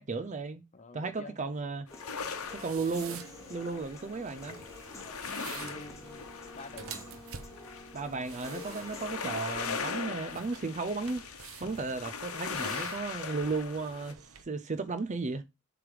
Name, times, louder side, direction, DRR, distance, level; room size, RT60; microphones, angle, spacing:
voice 1, 0.0-0.6 0.9-1.9 2.5-3.2 3.5-4.6 7.9-11.2 11.6-15.4, right 3 dB, 35° right, 0.6 m, -34 dB
voice 2, 0.7-1.5 5.5-6.3 6.5-6.9, left 2 dB, 35° left, 0.8 m, -48 dB
sound 1, 1.9-14.1, left 5 dB, 80° left, 1.0 m, -40 dB
Human voice / Piano, 1.9-9.9, left 3 dB, 15° left, 1.3 m, -49 dB
sound 2, 2.2-14.4, right 6 dB, 70° right, 0.9 m, -49 dB
7.2 x 3.4 x 4.7 m
head